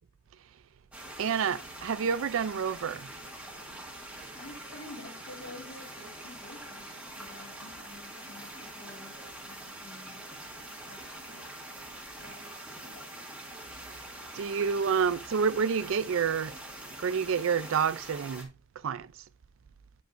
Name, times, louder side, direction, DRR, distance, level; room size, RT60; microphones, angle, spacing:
sound 1, 0.9-18.4, right 1 dB, 5° right, 1.5 m, -44 dB
voice 1, 1.2-3.1 14.3-16.5 17.0-18.5 18.8-19.1, right 6 dB, 70° right, 0.4 m, -28 dB
voice 2, 4.4-11.5 11.8-13.3, left 2 dB, 65° left, 2.1 m, -50 dB
8.9 x 5.1 x 2.6 m
head